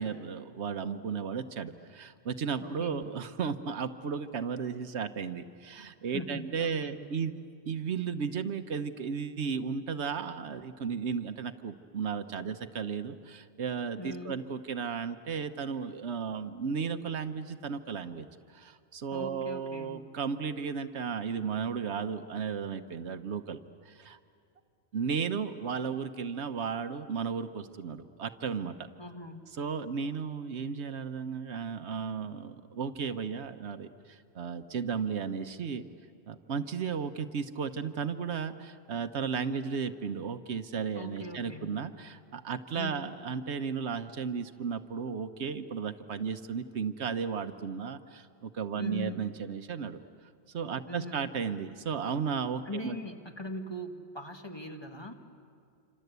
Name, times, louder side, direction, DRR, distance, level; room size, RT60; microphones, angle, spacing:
voice 1, 0.0-7.4 7.6-24.2 24.9-28.9 29.6-35.8 36.3-50.0 50.5-53.0, right 6 dB, 80° right, 9 dB, 1.2 m, -34 dB
voice 2, 2.6-3.1 6.1-7.0 14.0-14.4 19.1-20.0 29.0-29.5 40.9-41.7 42.8-43.1 48.8-49.2 50.9-51.2 52.7-55.1, left 1 dB, 25° left, 4 dB, 1.7 m, -40 dB
27.5 x 26.0 x 8.1 m, 2.3 s
omnidirectional pair, 1.1 m